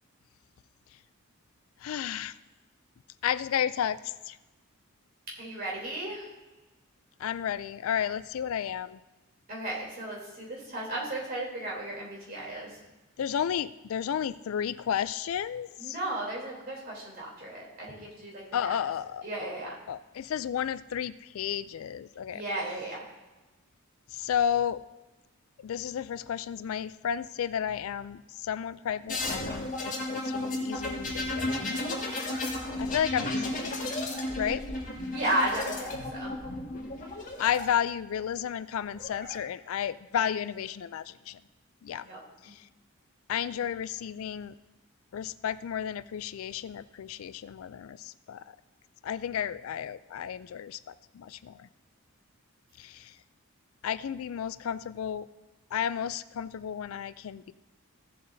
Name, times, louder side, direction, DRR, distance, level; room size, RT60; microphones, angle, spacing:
voice 1, 1.8-2.4 3.2-4.4 7.2-9.0 13.2-16.0 18.5-19.3 19.6-22.4 24.1-24.8 25.6-32.0 32.8-34.1 34.4-34.7 37.4-41.4 41.8-42.1 42.4-42.7 43.3-44.6 45.1-48.6 49.0-51.7 52.8-53.2 53.8-55.3 55.7-57.5, left 9 dB, 75° left, 15 dB, 0.3 m, -32 dB
voice 2, 5.4-6.3 9.5-12.8 15.8-18.7 19.2-19.8 22.3-23.0 35.1-36.4 42.0-42.2 42.4-42.5, right 1 dB, 45° right, -4 dB, 3.2 m, -34 dB
sound 1, 29.1-37.6 38.7-39.4, left 2 dB, 35° left, 1.8 m, -33 dB
16.0 x 7.7 x 2.7 m, 1.1 s
head